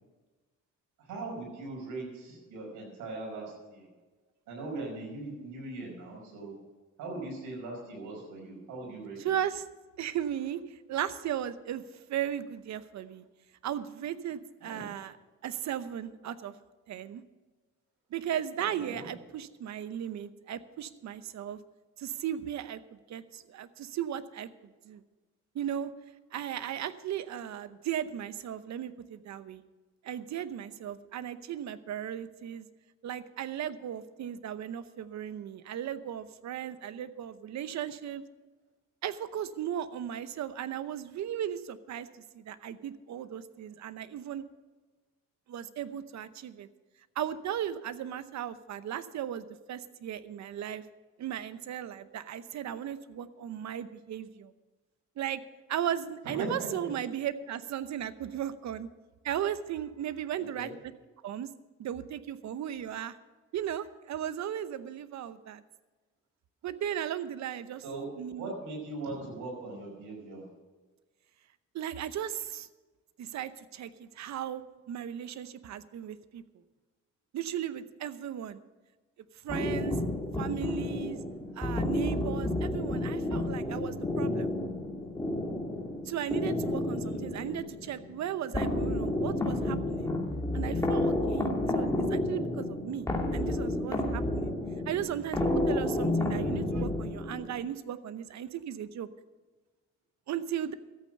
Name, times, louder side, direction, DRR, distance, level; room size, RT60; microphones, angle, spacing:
voice 1, 1.0-3.9 4.5-6.6 7.0-9.2 14.6-14.9 18.6-19.1 56.2-56.9 60.4-60.7 67.8-68.1 68.3-70.4, right 2 dB, 90° right, 0 dB, 5.3 m, -40 dB
voice 2, 9.2-9.7 10.0-10.6 10.9-11.8 12.1-13.2 13.6-15.2 15.4-16.5 16.9-17.2 18.1-21.6 22.0-22.8 23.1-24.5 24.8-25.0 25.5-25.9 26.3-29.6 30.0-32.7 33.0-38.2 39.0-44.4 45.5-46.7 47.2-50.8 51.2-54.5 55.2-55.4 55.7-58.9 59.2-60.7 61.2-61.5 61.8-63.2 63.5-65.6 66.6-67.8 68.2-68.5 71.7-72.7 73.2-74.6 74.9-76.4 77.3-78.6 79.4-79.9 80.4-81.2 81.6-84.5 86.1-90.1 90.5-91.5 91.7-94.5 94.9-95.4 95.7-99.1 100.3-100.7, right 10 dB, 65° right, 14 dB, 0.9 m, -36 dB
sound 1, 79.5-97.6, left 1 dB, 10° left, 2.5 m, -31 dB
13.5 x 8.7 x 6.6 m, 1.3 s
cardioid pair, 90°, 30 cm